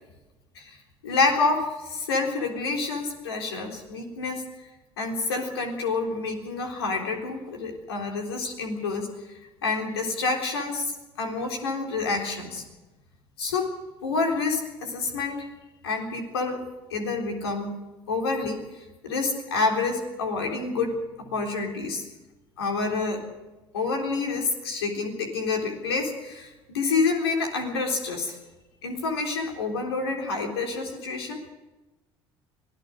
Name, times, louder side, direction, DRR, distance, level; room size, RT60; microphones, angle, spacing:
voice 1, 1.0-4.4 5.0-9.1 9.6-12.6 13.4-13.7 14.0-15.5 15.8-16.6 16.9-17.7 18.1-18.6 19.0-22.1 22.6-23.2 23.7-28.4 28.8-31.4, left 3 dB, 85° left, 2 dB, 3.7 m, -28 dB
25.0 x 16.0 x 6.5 m, 1.1 s
hypercardioid pair, 65°, 13 cm